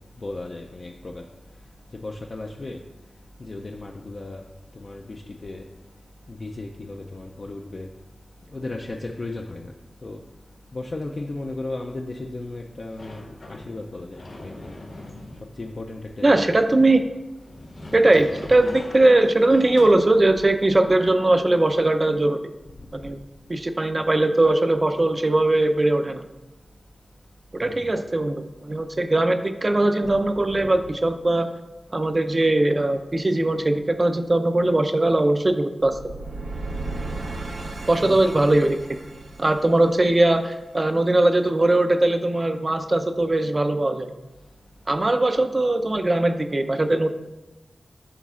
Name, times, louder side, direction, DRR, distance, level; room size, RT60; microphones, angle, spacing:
voice 1, 0.2-1.2 2.0-2.8 3.4-4.4 4.8-5.6 6.3-7.9 8.5-9.7 10.0-10.2 10.7-13.2 13.5-14.7 15.6-16.5 27.6-27.8 38.0-38.2, left 2 dB, 50° left, 1 dB, 0.4 m, -35 dB
Sliding door, 13.0-20.5, left 1 dB, 80° left, 1.7 m, -42 dB
voice 2, 16.2-17.0 17.9-22.4 22.9-23.2 23.5-26.2 27.5-31.5 31.9-36.0 37.9-38.8 39.4-44.1 44.9-47.1, right 2 dB, 35° right, 8 dB, 0.4 m, -20 dB
sound 1, 35.8-40.9, right 2 dB, 75° right, 0.7 m, -35 dB
11.0 x 4.0 x 2.4 m, 1.0 s
wide cardioid pair, 90°, 0 cm